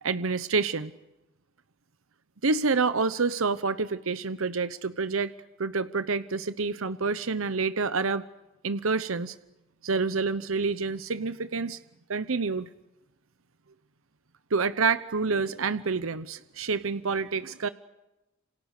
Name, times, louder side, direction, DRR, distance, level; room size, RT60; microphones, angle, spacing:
voice 1, 0.0-0.9 2.4-5.3 5.6-8.2 8.6-9.3 9.8-11.8 12.1-12.7 14.5-17.7, right 4 dB, 75° right, 13 dB, 0.9 m, -28 dB
28.5 x 26.5 x 6.7 m, 0.96 s
head